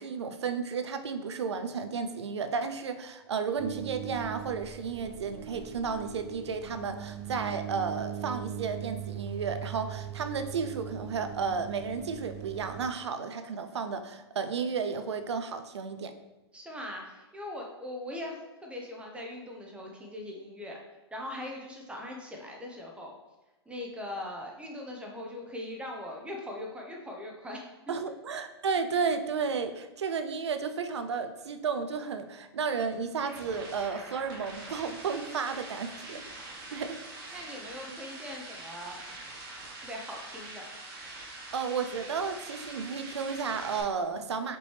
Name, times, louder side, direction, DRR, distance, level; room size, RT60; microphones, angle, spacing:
voice 1, 0.0-16.1 27.9-36.2 36.7-37.0 37.3-37.4 41.5-44.6, right 5 dB, 80° right, 8 dB, 0.5 m, -33 dB
sound 1, 3.6-12.9, right 11 dB, 30° right, 0.4 m, -40 dB
voice 2, 16.5-20.8 21.1-23.1 23.7-27.9 37.3-39.0 39.8-40.7, left 1 dB, 10° right, 0 dB, 0.8 m, -40 dB
sound 2, 32.8-43.8, right 2 dB, 45° right, 1.3 m, -44 dB
5.2 x 3.1 x 3.2 m, 1.1 s
hypercardioid pair, 115°, 14 cm